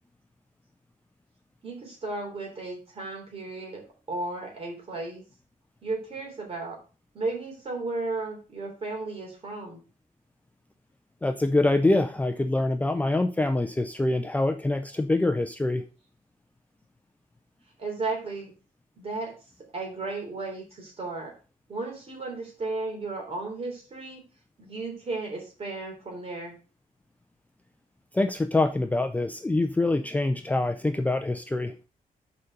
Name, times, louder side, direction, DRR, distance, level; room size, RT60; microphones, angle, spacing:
voice 1, 1.6-5.2 5.8-6.8 7.1-9.8 17.8-18.5 19.0-19.3 19.7-21.3 21.7-24.2 24.6-26.6, right 3 dB, 40° right, 1 dB, 3.4 m, -34 dB
voice 2, 11.2-15.8 28.1-31.7, left 2 dB, 10° left, 6 dB, 0.5 m, -25 dB
7.0 x 5.3 x 6.5 m, 0.36 s
wide cardioid pair, 170°, 15 cm